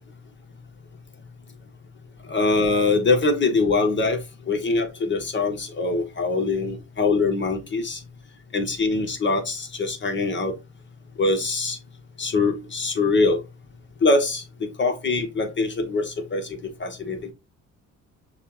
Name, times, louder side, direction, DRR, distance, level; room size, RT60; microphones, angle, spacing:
voice 1, 2.3-4.2 4.5-8.0 8.5-10.5 11.2-11.8 12.2-13.4 14.0-14.4 14.8-17.3, left 3 dB, 40° left, 1.4 m, -23 dB
6.5 x 2.5 x 3.3 m
cardioid pair, 90°, 30 cm